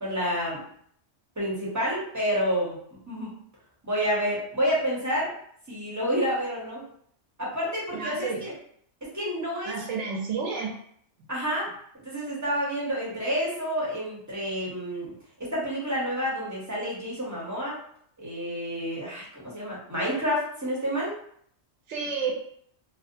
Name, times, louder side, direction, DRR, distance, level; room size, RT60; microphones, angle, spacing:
voice 1, 0.0-0.6 1.4-2.8 3.1-3.3 3.8-5.3 5.7-6.8 7.4-8.5 9.0-9.8 11.3-11.7 12.0-15.1 15.4-17.8 18.2-21.1, equal, 15° right, -6 dB, 0.8 m, -29 dB
voice 2, 7.9-8.4 9.7-10.7 21.9-22.3, right 5 dB, 85° right, 0 dB, 0.9 m, -30 dB
2.7 x 2.0 x 2.6 m, 0.64 s
omnidirectional pair, 1.2 m